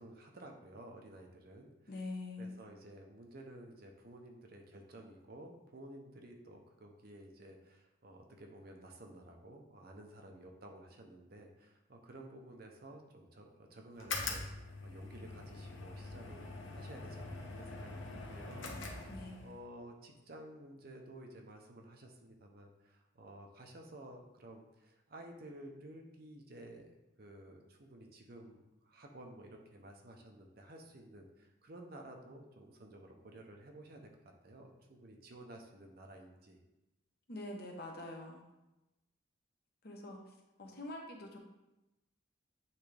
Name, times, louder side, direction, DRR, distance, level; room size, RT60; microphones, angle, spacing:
voice 1, 0.0-1.9 2.4-19.1 19.4-26.9 27.2-34.1 34.4-36.6, right 1 dB, 50° right, 2 dB, 0.7 m, -53 dB
voice 2, 1.9-2.5 19.1-19.5 37.3-38.4 39.8-40.2 40.6-41.4, left 2 dB, 50° left, 1 dB, 0.9 m, -44 dB
sound 1, 13.9-19.6, left 3 dB, 80° left, 0.9 m, -43 dB
8.3 x 3.5 x 3.4 m, 0.97 s
head